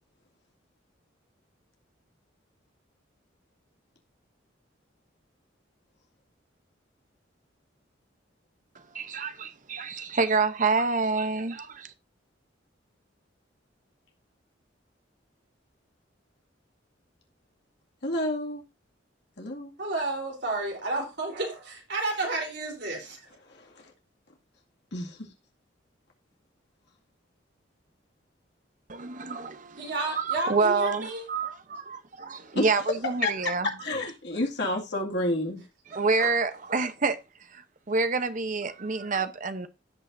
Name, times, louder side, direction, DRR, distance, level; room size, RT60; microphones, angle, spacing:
voice 1, 8.9-11.5 28.9-33.7 35.9-37.2 37.5-39.7, right 4 dB, 45° right, 0.9 m, -27 dB
voice 2, 18.0-18.6 19.4-19.7 23.5-23.9 24.9-25.3 32.5-32.7 33.2-33.3 33.6-35.6, left 1 dB, 65° left, 2.2 m, -30 dB
voice 3, 19.8-23.2 29.8-31.3 36.2-36.3, right 2 dB, 60° right, 3.8 m, -31 dB
16.0 x 5.5 x 2.7 m
head